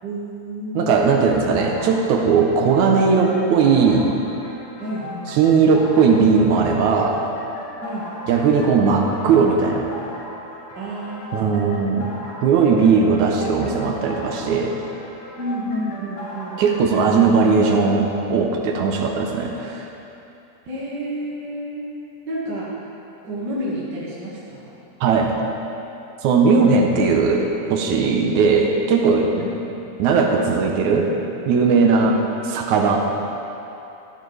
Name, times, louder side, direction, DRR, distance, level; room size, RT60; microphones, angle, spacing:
voice 1, 0.0-1.3 4.8-5.4 7.8-8.1 10.7-11.9 15.4-16.6 20.7-21.9 22.2-22.7 23.2-24.7 29.1-29.5 31.8-32.1, equal, 40° right, -8 dB, 1.7 m, -30 dB
voice 2, 0.7-4.1 5.3-7.2 8.3-9.9 11.3-14.8 16.6-19.9 25.0-25.4 26.2-29.5 30.0-31.1 31.5-32.1 32.5-33.0, right 5 dB, 75° right, 1 dB, 1.8 m, -18 dB
sound 1, 1.3-18.0, left 2 dB, 55° left, 3.1 m, -37 dB
13.5 x 13.0 x 3.4 m, 2.9 s
omnidirectional pair, 4.5 m